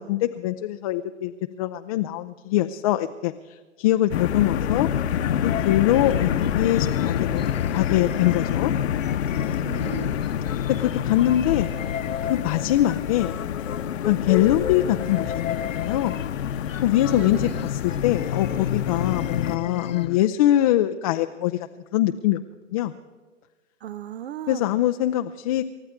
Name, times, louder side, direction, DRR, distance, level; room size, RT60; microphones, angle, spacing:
voice 1, 0.0-1.3 1.6-4.9 5.3-7.4 7.7-8.7 10.7-11.7 12.2-13.4 14.0-16.2 16.8-22.4 22.7-22.9 24.5-25.6, left 13 dB, 30° left, 7 dB, 0.5 m, -23 dB
sound 1, 4.1-19.6, left 9 dB, 60° left, 1.1 m, -28 dB
sound 2, 4.3-20.2, left 9 dB, 85° left, 0.8 m, -33 dB
voice 2, 9.6-10.2 17.1-17.7 23.8-24.7, right 11 dB, 55° right, 17 dB, 0.7 m, -35 dB
29.0 x 14.0 x 3.6 m, 1.3 s
hypercardioid pair, 130°, 38 cm